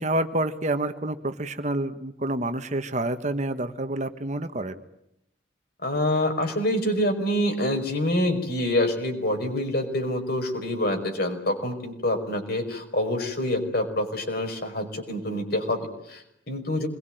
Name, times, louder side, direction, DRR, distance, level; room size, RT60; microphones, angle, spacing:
voice 1, 0.0-4.8, right 1 dB, 35° right, 9 dB, 1.4 m, -28 dB
voice 2, 5.8-16.9, left 1 dB, 50° left, 4 dB, 5.6 m, -26 dB
26.5 x 22.0 x 9.3 m, 0.79 s
head